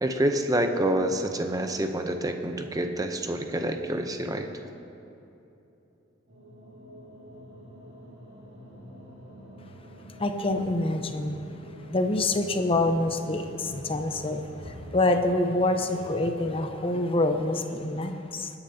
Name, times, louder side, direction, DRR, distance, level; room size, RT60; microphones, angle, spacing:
voice 1, 0.0-4.5, right 1 dB, 20° right, 6 dB, 0.7 m, -27 dB
sound 1, 6.3-16.6, equal, 60° right, 2.4 m, -46 dB
voice 2, 10.2-11.4 11.9-18.5, left 2 dB, 30° left, 6 dB, 0.8 m, -26 dB
21.5 x 10.0 x 2.8 m, 2.9 s
head